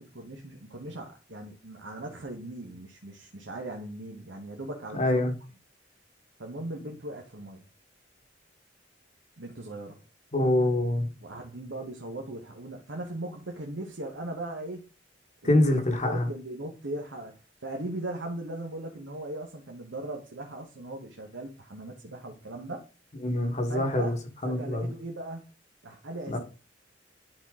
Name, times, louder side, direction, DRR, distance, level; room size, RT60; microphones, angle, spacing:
voice 1, 0.0-5.1 6.4-7.6 9.4-10.0 11.2-14.8 15.4-17.3 17.6-22.8 23.7-24.2 24.4-25.4 25.8-26.4, right 1 dB, 70° right, 1.2 m, -38 dB
voice 2, 4.9-5.3 10.3-11.1 15.4-16.3 23.2-24.2 24.4-24.9 26.3-26.4, left 1 dB, 40° left, 1.3 m, -25 dB
11.0 x 4.1 x 3.7 m
head